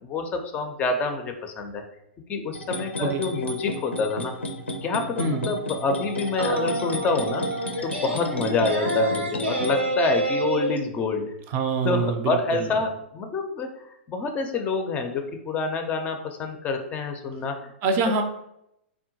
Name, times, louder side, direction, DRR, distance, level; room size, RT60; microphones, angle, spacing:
voice 1, 0.0-1.8 2.3-4.3 4.8-7.4 7.8-11.3 11.8-13.8 14.1-17.7, left 3 dB, 25° left, 5 dB, 0.4 m, -27 dB
sound 1, 2.5-9.7, left 1 dB, 85° left, 0.5 m, -33 dB
voice 2, 5.2-5.5 11.5-12.7 17.8-18.2, right 4 dB, 35° right, 6 dB, 0.4 m, -25 dB
sound 2, 6.4-10.8, right 1 dB, 85° right, 0.8 m, -28 dB
3.6 x 2.1 x 2.8 m, 0.79 s
figure-of-eight pair, 110°, 6 cm